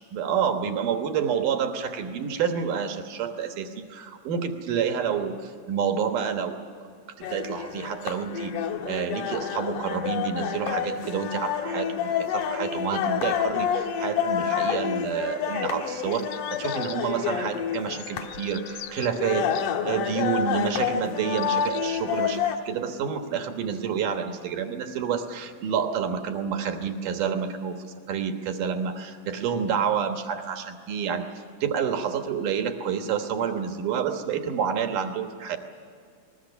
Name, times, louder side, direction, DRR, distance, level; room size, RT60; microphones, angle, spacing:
voice 1, 0.1-6.6 7.2-19.5 19.8-31.3 31.6-35.6, right 7 dB, 80° right, 5 dB, 1.9 m, -29 dB
sound 1, 7.2-22.6, left 8 dB, 60° left, 2.2 m, -29 dB
sound 2, 16.1-17.2 17.7-19.7 20.5-20.8 21.3-21.9, left 11 dB, 75° left, 2.7 m, -42 dB
29.0 x 21.0 x 6.9 m, 2.3 s
omnidirectional pair, 5.8 m